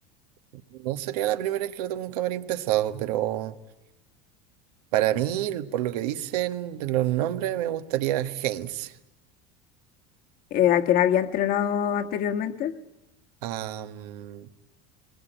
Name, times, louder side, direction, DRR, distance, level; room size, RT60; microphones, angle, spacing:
voice 1, 0.7-3.5 4.9-8.9 13.4-14.5, right 13 dB, 90° right, 10 dB, 1.4 m, -28 dB
voice 2, 10.5-12.7, left 10 dB, 50° left, 7 dB, 1.5 m, -23 dB
22.5 x 20.0 x 9.1 m, 0.90 s
supercardioid pair, 130°, 19 cm